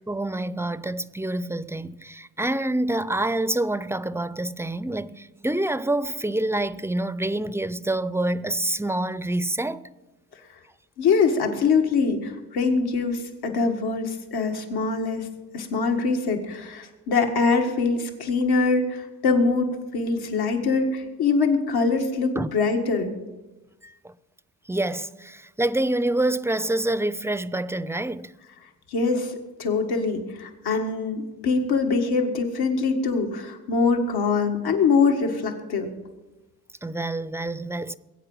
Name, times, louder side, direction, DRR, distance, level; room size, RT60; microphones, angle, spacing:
voice 1, 0.1-9.8 22.4-22.5 23.8-24.1 24.7-28.3 36.8-38.0, right 1 dB, 5° right, 0.4 m, -27 dB
voice 2, 11.0-15.3 15.5-23.1 28.9-29.3 29.6-35.9, left 4 dB, 80° left, 2.0 m, -23 dB
21.0 x 8.9 x 5.6 m
cardioid pair, 85°, 38 cm